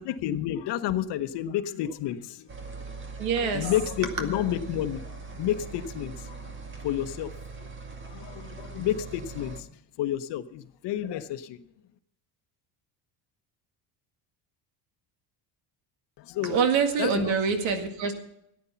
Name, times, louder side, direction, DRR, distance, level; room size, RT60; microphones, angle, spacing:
voice 1, 0.0-2.5 3.4-6.5 6.8-7.7 8.0-9.7 10.0-11.6 16.2-16.6 17.0-17.3, left 11 dB, 60° left, 12 dB, 1.0 m, -30 dB
sound 1, 2.5-9.6, right 4 dB, 25° right, 1.5 m, -41 dB
voice 2, 3.2-3.7 16.4-18.1, right 6 dB, 90° right, 7 dB, 2.2 m, -25 dB
14.0 x 9.7 x 5.7 m, 0.76 s
cardioid pair, 150°, 46 cm